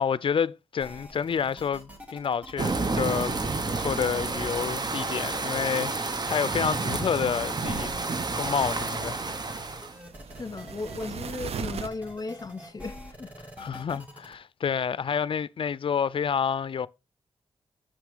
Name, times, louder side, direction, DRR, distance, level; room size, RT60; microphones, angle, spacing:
voice 1, 0.0-3.4 3.8-7.9 8.3-9.3 13.6-16.9, left 7 dB, 55° left, 0.4 m, -29 dB
sound 1, 0.8-14.3, equal, 15° right, 2.4 m, -46 dB
sound 2, 2.6-9.9, right 3 dB, 40° right, 0.9 m, -30 dB
sound 3, 6.0-11.9, right 7 dB, 70° right, 0.5 m, -42 dB
voice 2, 10.4-13.5, left 3 dB, 35° left, 0.9 m, -36 dB
6.5 x 5.9 x 3.5 m
cardioid pair, 60°, 11 cm